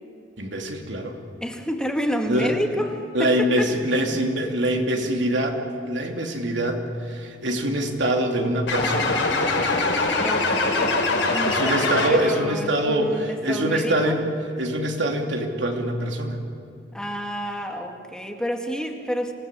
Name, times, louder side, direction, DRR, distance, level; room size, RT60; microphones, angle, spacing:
voice 1, 0.4-1.2 2.3-2.5 3.1-5.6 5.8-9.2 11.4-14.2 14.6-16.4, right 1 dB, 80° right, 2 dB, 2.9 m, -24 dB
voice 2, 1.4-3.7 10.2-14.2 16.9-19.3, equal, 5° left, 2 dB, 2.0 m, -29 dB
sound 1, 8.7-12.5, left 3 dB, 80° left, 5.1 m, -23 dB
27.0 x 17.5 x 8.4 m, 2.6 s
head